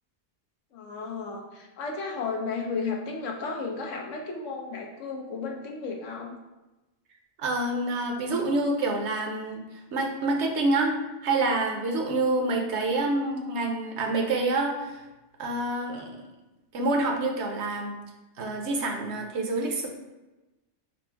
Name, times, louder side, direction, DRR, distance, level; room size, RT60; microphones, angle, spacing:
voice 1, 0.7-6.4, left 4 dB, 90° left, 1 dB, 1.0 m, -33 dB
voice 2, 7.4-9.6 9.9-10.9 11.2-15.0 15.4-16.1 16.7-18.0 18.4-19.9, right 2 dB, 70° right, 2 dB, 0.9 m, -27 dB
4.2 x 2.1 x 4.4 m, 1.1 s
omnidirectional pair, 1.2 m